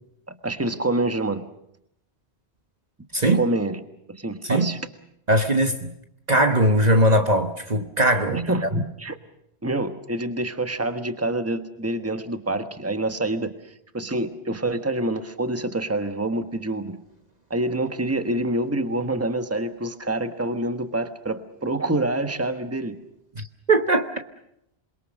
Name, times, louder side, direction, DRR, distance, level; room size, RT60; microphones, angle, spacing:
voice 1, 0.3-1.5 3.3-3.8 4.1-4.8 8.3-9.2 9.6-13.5 13.9-17.0 17.5-23.0, right 2 dB, 15° right, 1.3 m, -26 dB
voice 2, 3.1-3.4 4.4-4.7 5.3-5.9 6.3-8.8 23.4-24.1, right 1 dB, 40° right, 1.3 m, -20 dB
28.0 x 22.5 x 6.5 m
omnidirectional pair, 1.1 m